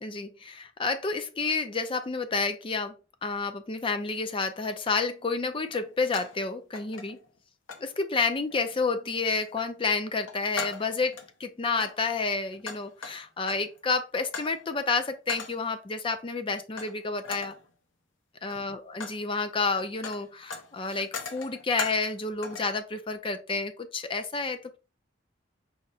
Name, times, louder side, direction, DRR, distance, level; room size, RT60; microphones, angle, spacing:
voice 1, 0.0-2.9 3.2-7.2 7.8-17.5 18.4-24.8, left 4 dB, 25° left, 0.5 m, -30 dB
sound 1, 4.4-4.6 5.7-6.4 6.7-7.4 7.7-7.9 8.5-8.8 9.2-9.7 10.1-11.3 11.7-13.8 14.3-14.6 15.3-15.7 16.8-17.0 17.2-17.6 18.3-19.2 19.5-22.2 22.4-22.8, left 5 dB, 75° left, 0.8 m, -40 dB
4.8 x 2.1 x 4.1 m
head